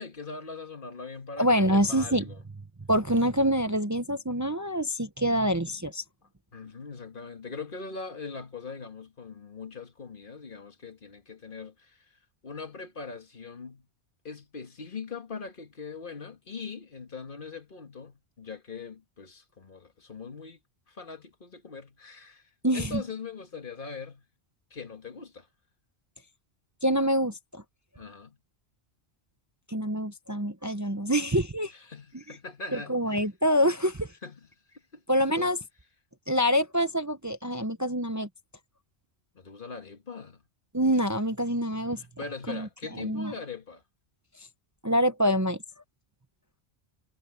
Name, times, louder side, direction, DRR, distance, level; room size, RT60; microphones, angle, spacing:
voice 1, 0.0-2.4 6.5-12.1 12.4-13.9 14.2-20.6 20.9-24.3 24.7-25.5 28.0-28.4 31.7-33.3 34.2-34.5 34.9-35.0 35.3-35.5 39.4-40.4 42.0-43.8, left 4 dB, 50° left, 1.9 m, -41 dB
voice 2, 1.4-2.2 2.9-6.0 22.6-23.0 26.8-27.6 29.7-31.7 32.3-32.4 32.7-34.1 35.1-35.6 36.3-38.3 40.7-42.0 42.5-42.7 43.0-43.3 44.8-45.6, equal, 15° right, 0.8 m, -26 dB
omnidirectional pair, 1.1 m